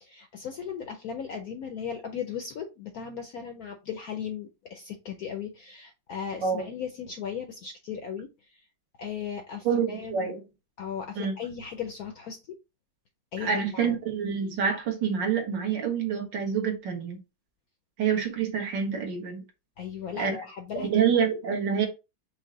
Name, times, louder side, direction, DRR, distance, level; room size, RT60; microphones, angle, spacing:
voice 1, 0.0-8.6 9.0-10.3 10.8-12.6 13.3-14.0 19.8-20.9, left 7 dB, 70° left, 0.8 m, -37 dB
voice 2, 9.7-10.4 11.2-11.3 13.4-17.2 18.0-19.4 20.2-20.4 20.8-21.9, right 7 dB, 70° right, 1.8 m, -27 dB
5.3 x 2.1 x 3.7 m
omnidirectional pair, 2.1 m